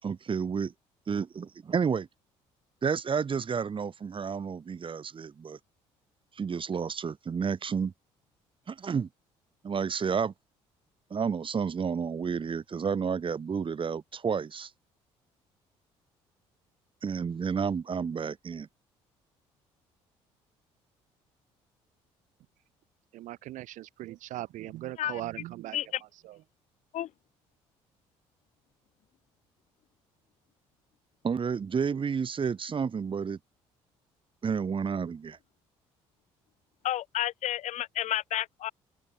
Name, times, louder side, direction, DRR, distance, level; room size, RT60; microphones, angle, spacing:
voice 1, 0.0-0.7 1.1-2.1 2.8-5.6 6.4-7.9 8.7-9.1 9.6-10.3 11.1-14.7 17.0-18.7 31.2-33.4 34.4-35.4, right 6 dB, 40° right, 3.8 m, -30 dB
voice 2, 23.1-25.8 26.2-26.4, right 15 dB, 75° right, 7.7 m, -39 dB
voice 3, 36.8-38.7, left 13 dB, 65° left, 2.1 m, -31 dB
open air
supercardioid pair, 70°, 13 cm